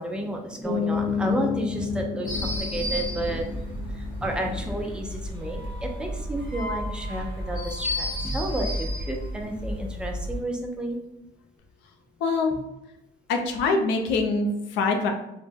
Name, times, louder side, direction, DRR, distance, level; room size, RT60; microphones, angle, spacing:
voice 1, 0.0-11.0 12.5-12.6, right 1 dB, 5° right, 1 dB, 0.4 m, -31 dB
sound 1, 0.6-6.2, left 7 dB, 10° left, 1.0 m, -33 dB
sound 2, 2.2-10.4, left 1 dB, 25° right, 1.0 m, -32 dB
voice 2, 12.2-12.5 13.3-15.1, left 3 dB, 85° left, 4 dB, 0.4 m, -24 dB
2.1 x 2.0 x 3.2 m, 0.90 s
cardioid pair, 115°, 18 cm